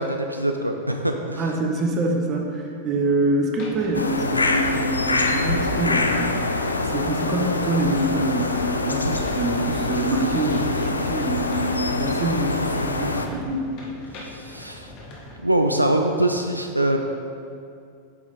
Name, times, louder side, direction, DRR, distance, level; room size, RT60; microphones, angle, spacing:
voice 1, 0.0-1.4 14.2-14.9 15.4-17.0, right 1 dB, 85° right, 4 dB, 0.4 m, -23 dB
voice 2, 1.4-6.3 6.8-13.7, right 2 dB, 30° right, 1 dB, 1.0 m, -25 dB
sound 1, 3.6-15.3, left 2 dB, 40° left, 1.5 m, -43 dB
sound 2, 3.9-13.3, left 2 dB, 80° left, 0.4 m, -24 dB
7.8 x 5.4 x 4.0 m, 2.5 s
figure-of-eight pair, 90°, 0 cm